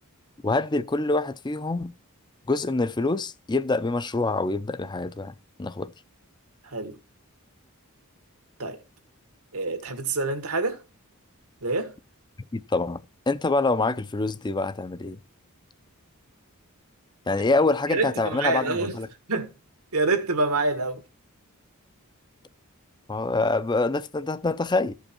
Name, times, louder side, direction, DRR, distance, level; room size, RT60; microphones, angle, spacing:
voice 1, 0.4-1.9 2.5-5.3 5.6-5.9 12.5-15.2 17.3-19.1 23.1-24.9, left 3 dB, 20° left, 0.4 m, -25 dB
voice 2, 6.6-7.0 8.6-8.8 9.5-10.8 11.6-11.9 17.9-19.0 19.3-19.5 19.9-21.0, right 3 dB, 80° right, 1.7 m, -26 dB
14.5 x 5.5 x 4.4 m
head